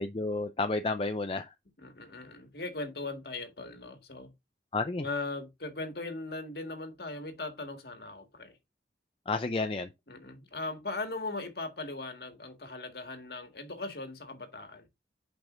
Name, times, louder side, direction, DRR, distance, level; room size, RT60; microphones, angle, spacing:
voice 1, 0.0-1.5 4.7-5.0 9.3-9.9, left 3 dB, 30° left, 0.5 m, -31 dB
voice 2, 1.8-4.3 5.0-8.5 10.1-14.9, left 3 dB, 60° left, 1.8 m, -39 dB
9.1 x 5.2 x 2.5 m
head